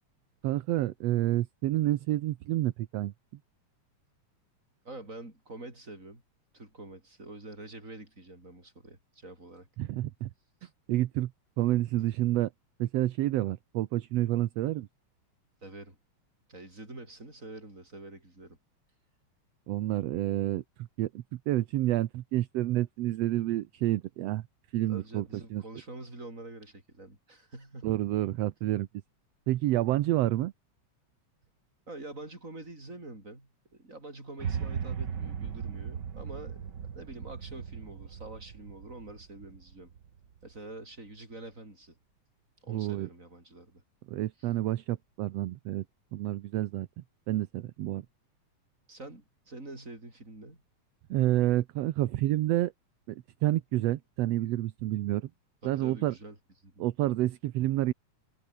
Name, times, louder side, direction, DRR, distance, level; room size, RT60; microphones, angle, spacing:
voice 1, 0.4-3.1 9.8-10.3 10.9-11.3 11.6-12.5 12.8-14.9 19.7-20.6 21.0-24.4 24.7-25.2 25.5-25.6 27.8-28.9 29.5-30.5 42.7-43.1 44.1-45.8 46.1-46.9 47.3-48.1 51.1-52.7 53.1-55.3 55.6-56.2 56.8-57.9, right 15 dB, 70° right, 1.7 m, -29 dB
voice 2, 4.8-6.2 6.5-9.7 10.6-10.7 15.6-16.0 16.5-18.6 24.9-27.9 31.9-36.7 36.9-39.9 40.4-42.0 42.6-43.8 44.4-44.5 48.9-50.6 55.6-56.4 56.6-56.8, right 2 dB, 25° right, 6.5 m, -46 dB
sound 1, 34.4-40.6, right 7 dB, 45° right, 1.8 m, -38 dB
omnidirectional pair, 3.5 m